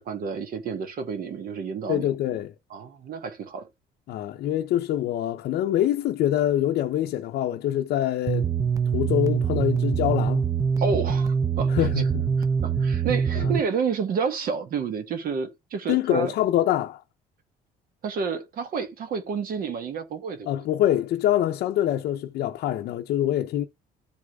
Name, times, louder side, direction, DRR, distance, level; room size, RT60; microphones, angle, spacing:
voice 1, 0.0-2.1 2.7-3.7 10.8-11.9 12.6-16.3 18.0-20.5, right 6 dB, 60° right, 1.2 m, -30 dB
voice 2, 1.9-2.5 4.1-8.5 8.9-10.4 11.7-12.2 13.4-13.5 15.9-17.0 20.5-23.7, left 12 dB, 70° left, 0.6 m, -25 dB
sound 1, 8.3-13.6, right 6 dB, 20° right, 0.7 m, -24 dB
13.5 x 4.8 x 2.3 m
cardioid pair, 110°, 17 cm